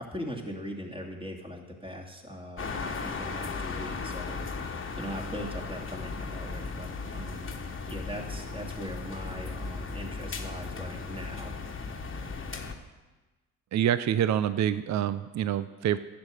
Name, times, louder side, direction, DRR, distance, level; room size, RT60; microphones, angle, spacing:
voice 1, 0.0-4.3 5.0-7.6 7.9-11.6, equal, 15° right, 0 dB, 2.4 m, -40 dB
sound 1, 2.6-12.7, left 4 dB, 35° left, 1.4 m, -36 dB
voice 2, 13.7-16.0, right 10 dB, 55° right, 14 dB, 0.5 m, -26 dB
11.0 x 7.6 x 6.5 m, 1.2 s
supercardioid pair, 65°, 34 cm